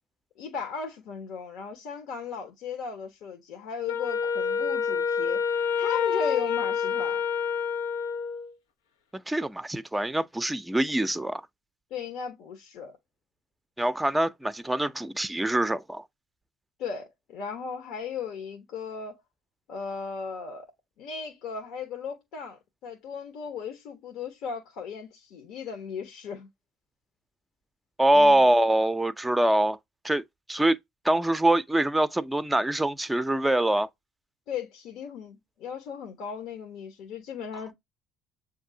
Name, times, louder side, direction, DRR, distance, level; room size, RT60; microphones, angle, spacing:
voice 1, 0.4-5.4 5.8-7.2 11.9-12.9 16.8-19.1 19.7-20.7 21.0-26.5 28.1-28.4 34.5-37.7, left 6 dB, 70° left, 1.0 m, -36 dB
Wind instrument woodwind instrument, 3.9-8.5, left 6 dB, 90° left, 0.6 m, -27 dB
voice 2, 9.3-11.4 13.8-16.0 28.0-29.8 30.0-30.2 30.5-30.8 31.0-33.9, right 1 dB, 10° right, 0.5 m, -24 dB
7.2 x 2.7 x 2.7 m
hypercardioid pair, 60°, 0 cm